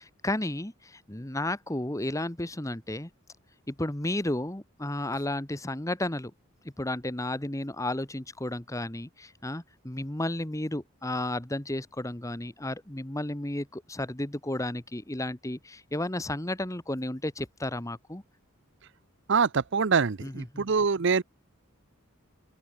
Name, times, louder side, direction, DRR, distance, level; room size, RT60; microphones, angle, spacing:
voice 1, 0.0-3.1 3.7-6.3 6.8-18.2 20.2-20.7, left 1 dB, 15° left, 1.2 m, -33 dB
voice 2, 19.3-21.2, right 5 dB, 60° right, 0.6 m, -24 dB
open air
head